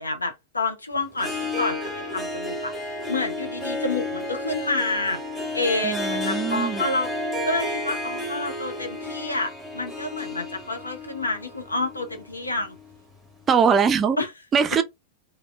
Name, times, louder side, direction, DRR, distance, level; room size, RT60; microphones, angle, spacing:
voice 1, 0.0-5.2 5.5-12.8 14.2-14.3, left 2 dB, 80° left, 0.7 m, -29 dB
Harp, 1.1-13.0, left 2 dB, ahead, 0.9 m, -32 dB
voice 2, 5.8-6.8 13.5-14.2 14.5-14.8, right 6 dB, 25° right, 0.4 m, -21 dB
3.3 x 2.0 x 2.3 m
figure-of-eight pair, 90°, 0 cm